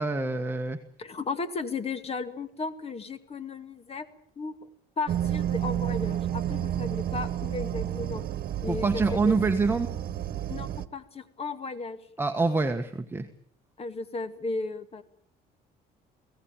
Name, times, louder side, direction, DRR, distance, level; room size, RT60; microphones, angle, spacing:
voice 1, 0.0-0.8 8.7-9.9 12.2-13.3, right 3 dB, 15° right, 5 dB, 1.4 m, -26 dB
voice 2, 1.0-4.1 4.4-4.5 5.0-8.2 8.6-9.4 10.5-12.0 13.8-15.0, left 3 dB, 35° left, 11 dB, 2.2 m, -35 dB
sound 1, 5.1-10.9, right 11 dB, 60° right, 1.4 m, -30 dB
24.0 x 17.5 x 8.9 m, 0.64 s
cardioid pair, 110°, 17 cm